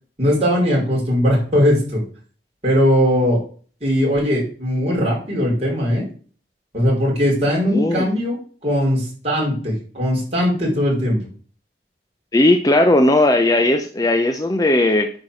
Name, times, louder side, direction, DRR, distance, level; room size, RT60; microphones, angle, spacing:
voice 1, 0.2-2.0 2.6-3.4 3.8-6.0 6.7-8.4 8.6-11.2, equal, 35° right, -4 dB, 5.1 m, -19 dB
voice 2, 7.7-8.1 12.3-15.1, left 1 dB, 20° left, 6 dB, 0.6 m, -16 dB
9.6 x 4.6 x 6.6 m, 0.42 s
head